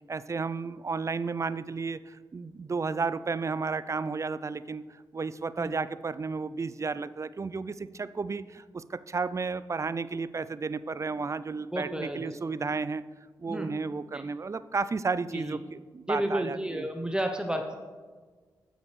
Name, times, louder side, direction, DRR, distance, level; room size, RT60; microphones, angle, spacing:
voice 1, 0.1-4.8 5.1-13.0 13.4-16.9, right 4 dB, 35° right, 15 dB, 0.4 m, -33 dB
voice 2, 11.7-12.4 13.5-13.7 14.1-14.2 15.3-15.6 16.1-17.8, right 1 dB, 10° right, 4 dB, 0.8 m, -31 dB
15.0 x 5.1 x 3.2 m, 1.5 s
supercardioid pair, 45°, 9 cm